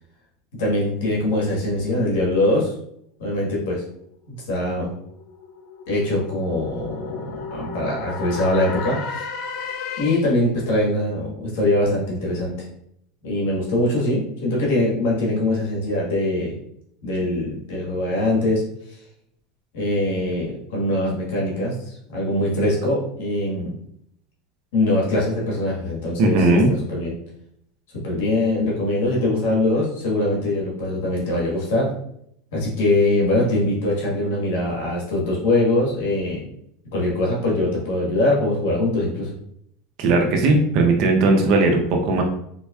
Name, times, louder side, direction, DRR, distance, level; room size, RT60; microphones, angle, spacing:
voice 1, 0.6-2.7 3.2-3.8 4.3-4.9 5.9-9.3 10.0-12.5 13.2-16.6 17.0-18.6 19.7-21.7 22.1-23.7 24.7-27.2 28.0-31.9 32.5-36.4 36.9-39.3, left 1 dB, 80° left, -3 dB, 1.4 m, -22 dB
sound 1, 4.4-10.5, left 5 dB, 55° left, 0.4 m, -34 dB
voice 2, 26.2-26.7 40.0-42.2, right 2 dB, 55° right, 3 dB, 0.7 m, -17 dB
4.2 x 3.0 x 2.3 m, 0.73 s
supercardioid pair, 120°, 0 cm